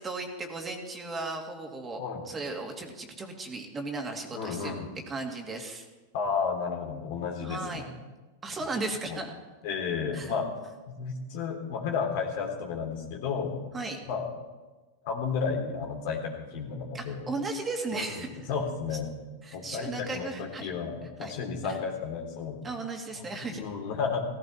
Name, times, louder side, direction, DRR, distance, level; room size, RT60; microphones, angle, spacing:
voice 1, 0.0-2.0 2.2-4.8 5.1-5.9 7.4-7.8 8.4-9.4 10.1-10.3 13.7-14.0 16.9-18.5 18.9-19.0 19.4-20.7 21.2-21.3 21.6-21.8 22.6-23.6, right 3 dB, 20° right, 2 dB, 2.6 m, -36 dB
voice 2, 4.3-4.9 6.1-7.8 9.1-9.2 9.6-10.5 10.9-13.6 14.1-14.3 15.0-17.2 18.2-19.1 19.5-22.6 23.4-24.3, left 5 dB, 60° left, 2 dB, 3.4 m, -32 dB
16.5 x 16.0 x 4.3 m, 1.2 s
hypercardioid pair, 90°, 0 cm